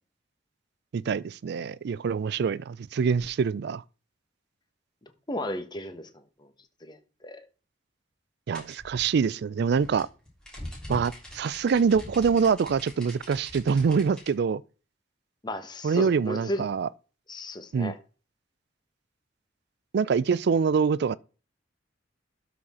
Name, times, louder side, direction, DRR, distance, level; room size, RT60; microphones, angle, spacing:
voice 1, 0.9-3.8 8.5-10.1 10.9-14.6 15.8-16.9 17.7-17.9 19.9-21.2, right 6 dB, 60° right, 0.4 m, -25 dB
voice 2, 5.3-6.1 6.4-6.5 6.8-7.0 7.2-7.4 15.4-16.6 17.3-18.0, left 1 dB, 25° left, 1.1 m, -34 dB
sound 1, 8.5-14.3, left 1 dB, 5° left, 3.2 m, -42 dB
12.5 x 4.1 x 4.2 m
head